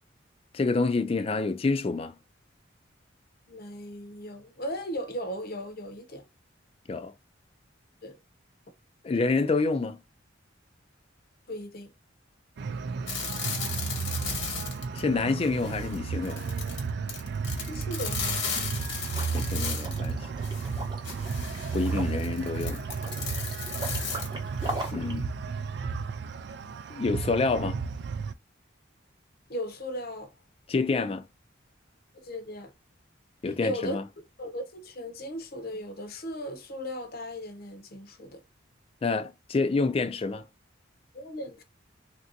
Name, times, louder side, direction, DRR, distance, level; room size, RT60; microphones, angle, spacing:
voice 1, 0.5-2.1 6.9-7.1 9.0-10.0 14.9-16.5 19.3-20.3 21.7-22.8 24.9-25.3 26.9-27.8 30.7-31.2 33.4-34.0 39.0-40.5, left 3 dB, 30° left, 0.3 m, -27 dB
voice 2, 3.5-6.2 8.0-8.2 11.5-11.9 17.7-18.8 29.5-30.3 32.1-32.7 33.6-34.0 34.4-38.4 41.1-41.6, equal, 50° left, 0.7 m, -37 dB
sound 1, 12.6-28.3, right 5 dB, 60° right, 0.3 m, -33 dB
sound 2, 13.1-15.1 15.4-20.1 20.4-24.9, left 6 dB, 75° left, 1.1 m, -36 dB
Liquid, 19.1-25.2, right 1 dB, 25° right, 0.7 m, -40 dB
3.3 x 2.6 x 2.6 m
head